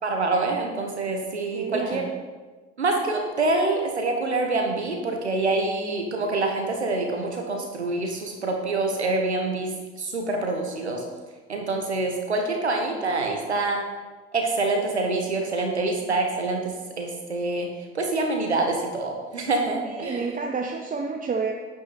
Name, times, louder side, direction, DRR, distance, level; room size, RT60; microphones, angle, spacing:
voice 1, 0.0-2.0 2.8-11.0 11.5-13.8 14.3-17.7 17.9-20.3, right 2 dB, 90° right, 2 dB, 1.4 m, -26 dB
voice 2, 1.5-2.1 19.8-21.5, right 4 dB, 25° right, 2 dB, 0.9 m, -30 dB
9.6 x 8.7 x 4.3 m, 1.3 s
figure-of-eight pair, 60°, 32 cm